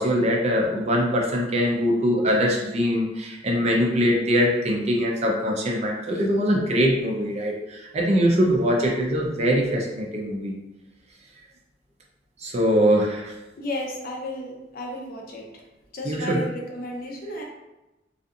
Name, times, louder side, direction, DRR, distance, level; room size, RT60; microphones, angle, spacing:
voice 1, 0.0-10.6 12.4-13.3 16.0-16.4, equal, 35° right, -1 dB, 0.4 m, -22 dB
voice 2, 13.6-15.5 15.9-17.4, left 1 dB, 55° left, -1 dB, 0.5 m, -33 dB
2.6 x 2.4 x 2.4 m, 0.99 s
head